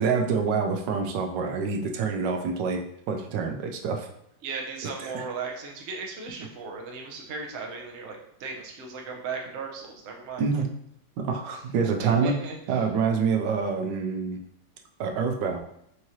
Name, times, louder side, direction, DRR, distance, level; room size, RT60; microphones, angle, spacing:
voice 1, 0.0-4.1 5.0-5.2 10.4-10.7 11.2-12.4 12.7-14.4 15.0-15.6, right 5 dB, 80° right, 3 dB, 1.3 m, -26 dB
voice 2, 4.4-10.4 11.8-12.8, right 4 dB, 55° right, -1 dB, 0.8 m, -37 dB
4.8 x 3.0 x 2.7 m, 0.74 s
omnidirectional pair, 1.9 m